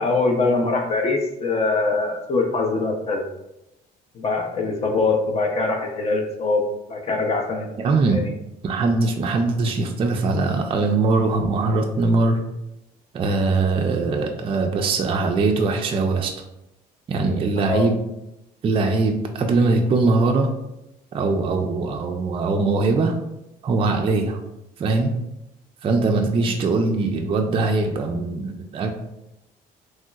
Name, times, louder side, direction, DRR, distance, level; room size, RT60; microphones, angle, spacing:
voice 1, 0.0-3.2 4.1-6.6 6.9-7.7 8.1-8.3 17.6-17.9, left 3 dB, 40° left, 2 dB, 0.5 m, -23 dB
voice 2, 7.8-8.2 8.6-12.4 13.1-16.3 17.1-18.0 18.6-20.5 21.1-23.1 23.6-24.4 24.8-25.1 25.8-28.9, right 3 dB, 35° right, 3 dB, 0.3 m, -21 dB
3.1 x 2.7 x 2.2 m, 0.88 s
cardioid pair, 110°, 17 cm